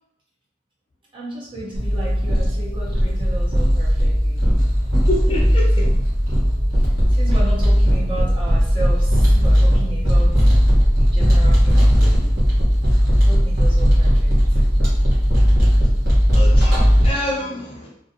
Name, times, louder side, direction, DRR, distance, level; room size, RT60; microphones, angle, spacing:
voice 1, 1.1-4.5 5.2-5.3 5.7-5.8 6.8-10.4 11.0-12.3 13.2-14.6, right 2 dB, 25° right, -4 dB, 0.6 m, -34 dB
sound 1, 1.7-17.1, equal, 50° right, 1.0 m, -16 dB
voice 2, 4.9-5.7 16.3-17.9, left 1 dB, 30° left, -2 dB, 0.3 m, -27 dB
2.5 x 2.2 x 2.6 m, 0.73 s
head